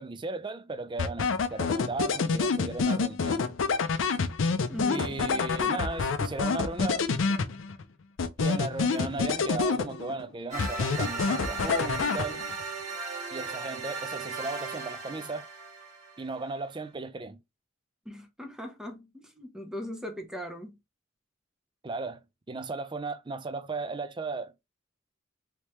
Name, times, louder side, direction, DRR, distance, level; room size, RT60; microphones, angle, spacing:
voice 1, 0.0-3.4 4.9-7.1 8.4-12.4 13.3-15.5 16.2-17.4 21.8-22.2 22.5-24.5, right 3 dB, 25° right, 0.4 m, -36 dB
sound 1, 1.0-7.8 8.2-10.2 10.6-12.6, left 4 dB, 70° left, 0.5 m, -27 dB
voice 2, 4.7-5.7 18.0-20.7, equal, 5° right, 0.9 m, -40 dB
sound 2, 10.5-16.4, right 4 dB, 40° right, 1.8 m, -37 dB
3.3 x 3.2 x 3.0 m
head